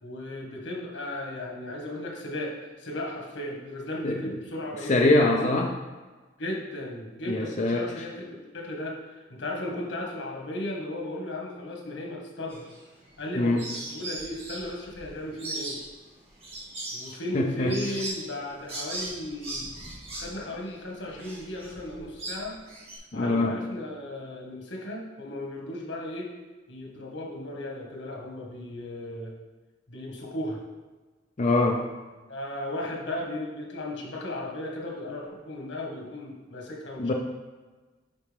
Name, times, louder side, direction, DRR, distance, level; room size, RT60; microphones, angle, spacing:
voice 1, 0.0-5.7 6.4-8.2 8.5-12.6 13.2-15.8 16.9-19.6 20.1-22.6 23.1-26.3 26.7-29.3 29.9-30.6 32.3-37.1, left 1 dB, 90° left, -1 dB, 1.7 m, -35 dB
voice 2, 4.0-4.4 4.9-5.7 7.3-8.1 13.4-13.6 17.3-17.7 23.1-23.6 31.4-31.9 37.0-37.1, left 2 dB, 40° left, 1 dB, 0.5 m, -23 dB
sound 1, 12.5-13.3 13.6-23.0, right 2 dB, 30° right, 2.0 m, -38 dB
10.5 x 4.3 x 3.5 m, 1.3 s
head